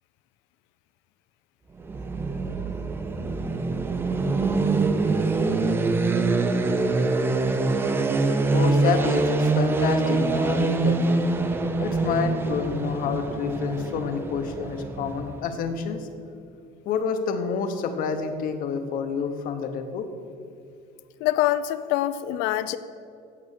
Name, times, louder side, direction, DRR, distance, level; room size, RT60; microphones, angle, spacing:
sound 1, 1.8-15.7, right 3 dB, 10° right, 0.4 m, -24 dB
voice 1, 8.5-11.2 11.8-16.1 16.8-20.1, left 6 dB, 50° left, 7 dB, 0.9 m, -28 dB
voice 2, 21.2-22.8, left 14 dB, 80° left, 14 dB, 0.5 m, -25 dB
8.7 x 7.4 x 6.7 m, 2.5 s
cardioid pair, 170°, 19 cm